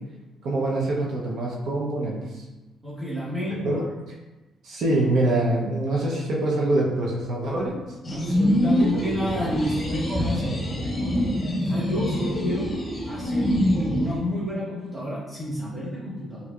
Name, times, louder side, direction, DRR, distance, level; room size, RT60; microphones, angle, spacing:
voice 1, 0.4-2.4 3.6-3.8 4.6-7.9 8.8-9.2, right 2 dB, 70° right, -3 dB, 0.7 m, -25 dB
voice 2, 2.8-3.8 8.1-12.7 13.1-13.6 13.9-16.5, left 1 dB, 5° right, -8 dB, 1.1 m, -30 dB
sound 1, 8.0-14.2, equal, 40° left, 0.9 m, -25 dB
4.4 x 2.7 x 2.4 m, 1.1 s
cardioid pair, 90°, 0 cm